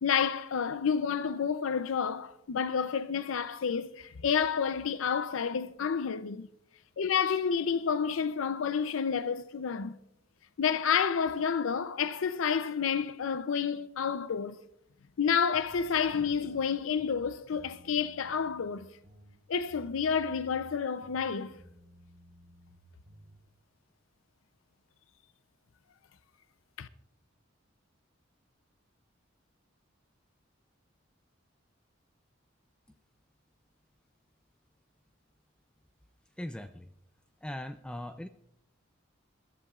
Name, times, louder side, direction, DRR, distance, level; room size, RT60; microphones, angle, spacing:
voice 1, 0.0-6.5 7.0-10.0 10.6-14.6 15.2-18.9 19.5-21.5 26.8-26.9, left 6 dB, 85° left, 0.5 m, -30 dB
sound 1, 15.5-16.6 16.9-18.7 19.0-20.8 21.0-23.4, right 1 dB, 45° right, 4.4 m, -56 dB
voice 2, 36.4-36.9 37.4-38.3, left 1 dB, 5° left, 0.4 m, -39 dB
22.0 x 13.5 x 2.4 m
head